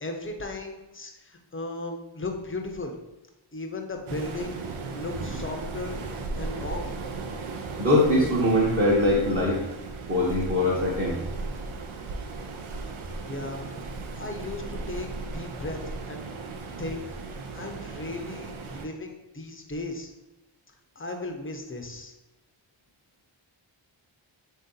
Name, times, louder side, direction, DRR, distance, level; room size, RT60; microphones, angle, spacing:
voice 1, 0.0-3.0 3.5-4.6 4.9-6.0 6.4-6.9 13.3-13.7 14.2-15.8 16.1-16.2 16.8-17.2 17.5-20.1 21.0-22.1, left 2 dB, 25° left, 3 dB, 0.6 m, -36 dB
Waves surf, 4.1-18.9, right 3 dB, 85° right, 0.6 m, -36 dB
voice 2, 7.8-9.6 10.1-11.2, left 1 dB, 30° right, -6 dB, 0.9 m, -22 dB
3.6 x 2.7 x 3.7 m, 1.0 s
wide cardioid pair, 75°, 48 cm